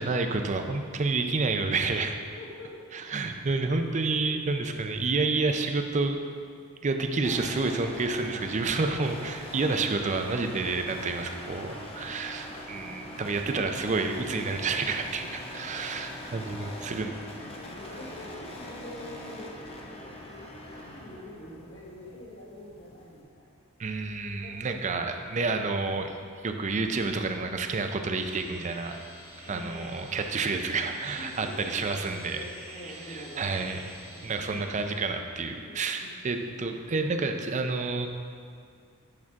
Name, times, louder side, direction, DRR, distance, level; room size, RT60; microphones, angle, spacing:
voice 1, 0.0-2.2 2.9-6.2 6.8-17.1 23.8-26.1 26.4-29.0 29.5-32.4 33.1-33.8 34.2-38.1, right 3 dB, 35° right, 6 dB, 0.5 m, -29 dB
voice 2, 2.4-2.7 16.5-17.1 17.6-23.4 24.4-24.6 29.4-29.8 31.2-31.9 32.3-33.7 34.1-34.6 35.6-36.1, left 1 dB, 60° left, -5 dB, 1.7 m, -45 dB
sound 1, 7.2-23.2, left 1 dB, 25° left, 0.8 m, -43 dB
sound 2, 28.2-35.0, equal, 75° right, 1.9 m, -47 dB
8.7 x 6.0 x 3.6 m, 2.2 s
head